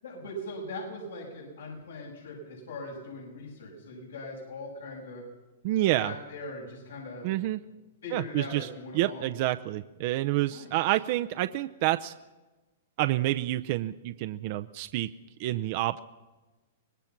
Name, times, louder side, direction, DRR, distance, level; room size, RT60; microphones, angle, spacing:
voice 1, 0.0-5.2 6.0-7.3 8.0-9.3 10.5-10.7 13.3-13.4, left 2 dB, 90° left, -3 dB, 7.6 m, -40 dB
voice 2, 5.6-6.1 7.2-7.6 8.1-8.7 8.9-12.1 13.0-15.1 15.4-16.0, right 16 dB, 50° right, 10 dB, 0.6 m, -28 dB
25.0 x 19.0 x 6.0 m, 1.2 s
hypercardioid pair, 135°, 0 cm